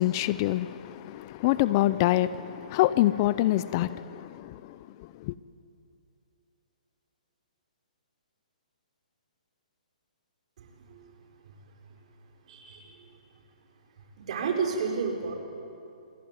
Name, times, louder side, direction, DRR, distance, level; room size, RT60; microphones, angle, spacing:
voice 1, 0.0-4.8 5.2-5.3, left 15 dB, 30° left, 0.6 m, -26 dB
voice 2, 12.5-12.8 14.3-15.3, right 5 dB, 50° right, 5.4 m, -29 dB
27.5 x 22.5 x 9.6 m
hypercardioid pair, 160°, 4 cm